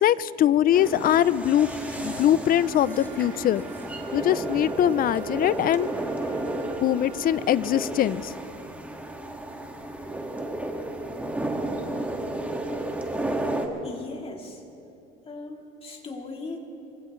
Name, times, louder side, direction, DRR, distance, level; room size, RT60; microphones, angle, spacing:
voice 1, 0.0-1.7 2.0-3.6 4.1-5.9 6.8-8.3, left 11 dB, 45° left, 18 dB, 0.5 m, -22 dB
sound 1, 0.7-7.8 8.1-8.2, left 1 dB, 10° left, 3.8 m, -49 dB
sound 2, 0.7-13.7, right 1 dB, 5° right, 1.8 m, -32 dB
Wind instrument woodwind instrument, 2.5-7.7, right 7 dB, 85° right, 1.6 m, -44 dB
voice 2, 13.8-14.6 15.2-16.6, left 3 dB, 30° left, 0 dB, 2.9 m, -38 dB
25.0 x 16.5 x 3.2 m, 2.7 s
supercardioid pair, 90°, 20 cm